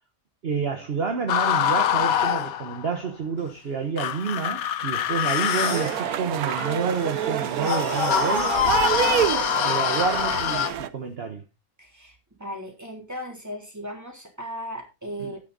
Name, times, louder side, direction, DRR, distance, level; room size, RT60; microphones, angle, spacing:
voice 1, 0.4-8.5 9.6-11.4 15.2-15.3, right 5 dB, 45° right, 1.4 m, -29 dB
sound 1, 1.3-3.0 4.0-10.7, left 10 dB, 80° left, 1.2 m, -25 dB
sound 2, 5.1-6.0 7.6-10.8, left 4 dB, 60° left, 1.7 m, -31 dB
sound 3, 5.6-10.9, right 10 dB, 90° right, 1.3 m, -27 dB
voice 2, 11.8-15.4, equal, 10° right, 3.3 m, -37 dB
10.5 x 9.7 x 4.0 m
omnidirectional pair, 1.5 m